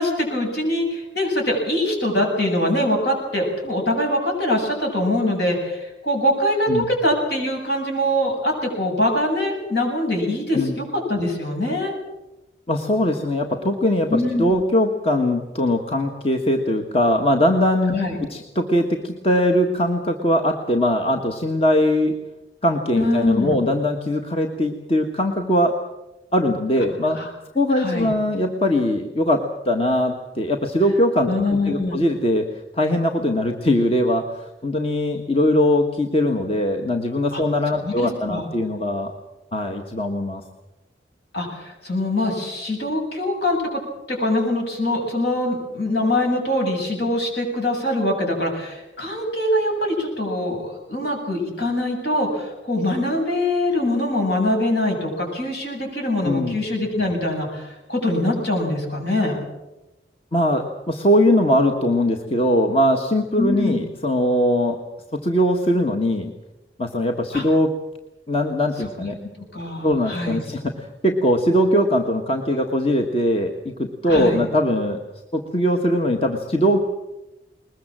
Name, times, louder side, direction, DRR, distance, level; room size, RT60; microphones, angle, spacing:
voice 1, 0.0-11.9 14.1-14.4 17.9-18.2 23.0-23.6 27.2-27.3 27.8-28.1 31.3-32.0 37.3-37.4 37.8-38.5 41.3-43.8 44.1-59.4 63.4-63.8 67.3-67.4 69.0-69.1 69.5-70.4 74.1-74.4, left 1 dB, 65° left, 1 dB, 7.9 m, -23 dB
voice 2, 12.7-18.0 18.3-22.1 22.6-25.8 26.3-27.2 27.5-31.3 31.6-32.5 32.7-39.1 39.5-40.4 56.2-56.6 60.3-64.8 65.1-66.3 66.8-67.7 68.3-69.2 69.8-75.0 75.3-76.9, left 1 dB, 35° left, 3 dB, 1.5 m, -21 dB
21.0 x 21.0 x 7.6 m, 0.99 s
head